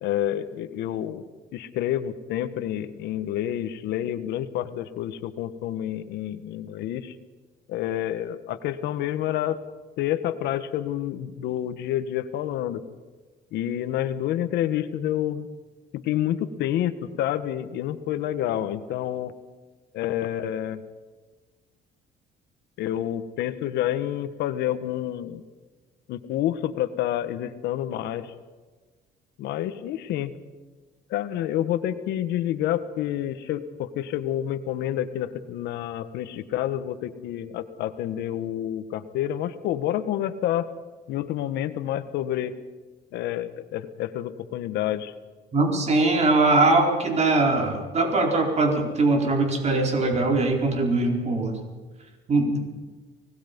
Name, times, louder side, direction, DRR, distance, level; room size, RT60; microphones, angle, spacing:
voice 1, 0.0-1.3 1.5-7.1 7.7-9.6 10.0-12.8 13.5-15.5 15.9-19.3 19.9-20.8 22.8-25.4 26.1-28.3 29.4-30.3 31.1-40.7 41.1-42.5 43.1-45.1, left 12 dB, 80° left, 11 dB, 1.4 m, -28 dB
voice 2, 45.5-51.6 52.3-52.6, right 2 dB, 40° right, 2 dB, 4.5 m, -21 dB
25.0 x 19.5 x 5.4 m, 1.3 s
cardioid pair, 110°, 17 cm